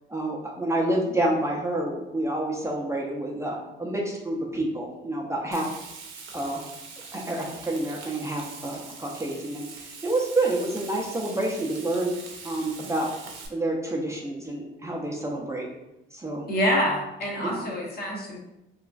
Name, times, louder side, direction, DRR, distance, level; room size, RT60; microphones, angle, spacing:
voice 1, 0.1-5.7 6.3-6.6 7.1-9.6 10.0-12.1 12.4-13.1 13.5-15.7 16.1-16.5 17.4-17.6, right 1 dB, 15° right, -3 dB, 0.5 m, -28 dB
Frying (food), 5.5-13.5, right 5 dB, 75° right, 0.6 m, -43 dB
voice 2, 16.5-18.4, equal, 50° left, -3 dB, 1.0 m, -26 dB
3.0 x 2.4 x 2.4 m, 0.91 s
cardioid pair, 90°, 20 cm